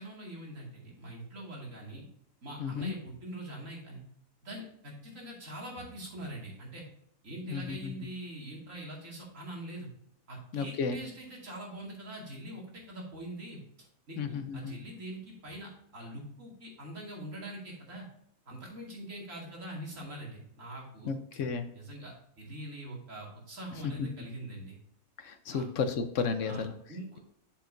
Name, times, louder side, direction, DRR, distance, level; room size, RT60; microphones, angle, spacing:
voice 1, 0.0-2.0 2.4-4.0 4.4-6.8 7.2-9.9 10.3-13.6 14.1-18.1 18.5-21.1 21.7-24.8 25.5-25.7 26.4-26.6 26.9-27.2, right 1 dB, 65° right, -2 dB, 2.7 m, -43 dB
voice 2, 2.6-2.9 7.5-7.9 10.5-11.0 14.2-14.7 21.0-21.7 23.8-24.1 25.2-26.7, left 5 dB, 65° left, 9 dB, 1.0 m, -33 dB
7.6 x 7.3 x 2.7 m, 0.72 s
omnidirectional pair, 1.5 m